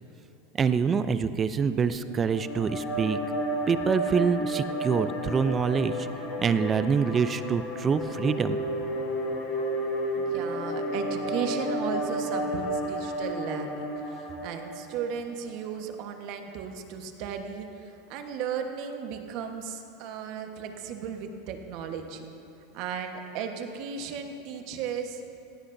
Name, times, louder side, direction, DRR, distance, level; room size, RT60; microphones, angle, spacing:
voice 1, 0.6-3.2 3.7-6.1 6.4-8.6, right 6 dB, 25° right, 12 dB, 0.5 m, -25 dB
sound 1, 2.1-15.4, equal, 45° left, 3.4 m, -32 dB
voice 2, 10.2-22.3 22.7-25.2, right 7 dB, 55° right, 5 dB, 1.3 m, -35 dB
18.5 x 14.0 x 2.7 m, 2.9 s
supercardioid pair, 115°, 0 cm